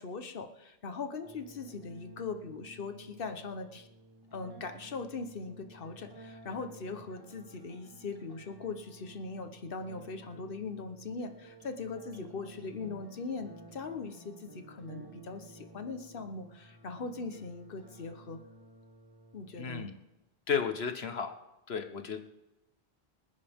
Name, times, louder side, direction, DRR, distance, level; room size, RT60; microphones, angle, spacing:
voice 1, 0.0-3.9 4.3-18.4 19.3-19.9, left 4 dB, 60° left, 7 dB, 1.3 m, -40 dB
sound 1, 1.2-20.2, right 1 dB, 20° right, 1.4 m, -54 dB
voice 2, 19.6-19.9 20.5-21.3 21.7-22.2, left 6 dB, 80° left, 7 dB, 1.4 m, -33 dB
27.0 x 10.5 x 3.6 m, 0.99 s
omnidirectional pair, 1.0 m